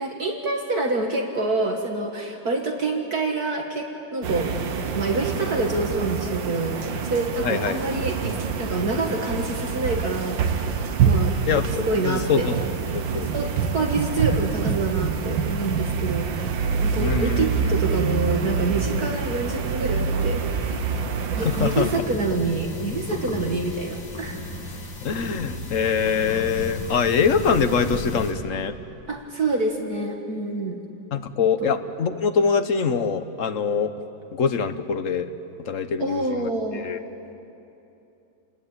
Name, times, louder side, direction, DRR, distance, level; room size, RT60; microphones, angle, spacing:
voice 1, 0.0-4.5 4.9-10.7 11.0-11.3 11.7-12.5 13.3-16.4 16.8-24.4 29.1-30.8 31.6-31.7 36.0-36.9, right 3 dB, 50° right, 2 dB, 2.2 m, -27 dB
sound 1, 4.2-22.0, right 6 dB, 70° right, 2.0 m, -26 dB
voice 2, 7.4-7.8 11.5-11.6 12.0-12.5 13.1-13.3 17.0-17.5 21.4-21.9 25.0-28.7 31.1-33.9 34.3-35.3 35.6-37.0, left 6 dB, 50° left, 9 dB, 1.2 m, -23 dB
sound 2, 21.4-28.3, left 2 dB, 75° left, 3.6 m, -33 dB
29.5 x 20.0 x 8.9 m, 2.9 s
omnidirectional pair, 2.1 m